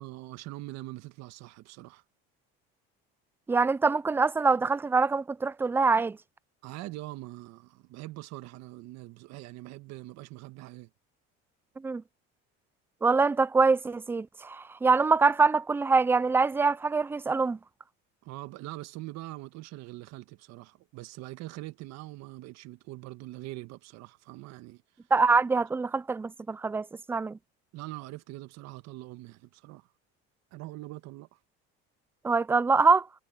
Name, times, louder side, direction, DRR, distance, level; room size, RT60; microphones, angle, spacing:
voice 1, 0.0-2.0 6.6-10.9 18.2-24.8 27.7-29.9 30.5-31.4, right 18 dB, 65° right, 1.5 m, -43 dB
voice 2, 3.5-6.2 11.8-12.0 13.0-17.6 25.1-27.4 32.2-33.1, right 4 dB, 10° right, 0.3 m, -24 dB
cardioid pair, 125°, 29 cm